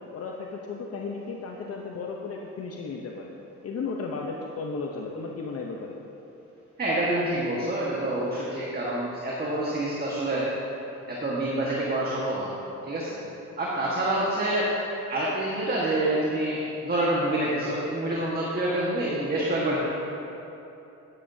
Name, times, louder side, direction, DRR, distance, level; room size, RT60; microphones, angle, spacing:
voice 1, 0.1-3.3 3.6-6.0, left 4 dB, 50° left, 0 dB, 0.8 m, -34 dB
voice 2, 6.8-10.4 11.1-12.5 12.8-13.2 13.6-14.7 15.1-19.8, right 1 dB, 30° right, -5 dB, 1.5 m, -27 dB
13.0 x 9.8 x 2.7 m, 3.0 s
cardioid pair, 90°, 30 cm